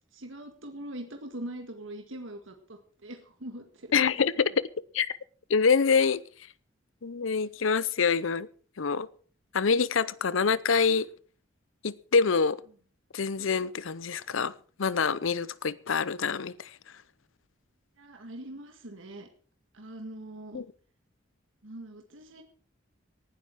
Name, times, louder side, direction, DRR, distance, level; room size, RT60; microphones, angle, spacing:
voice 1, 0.1-4.0 18.0-19.3 19.7-20.6 21.6-22.4, right 1 dB, 80° right, 1.9 m, -42 dB
voice 2, 3.9-4.5 4.9-5.2 5.5-6.2 7.0-8.5 8.8-9.1 9.5-11.1 11.8-12.6 13.1-14.5 14.8-16.7 20.5-20.7, left 5 dB, 90° left, 0.7 m, -26 dB
19.0 x 12.0 x 4.8 m
head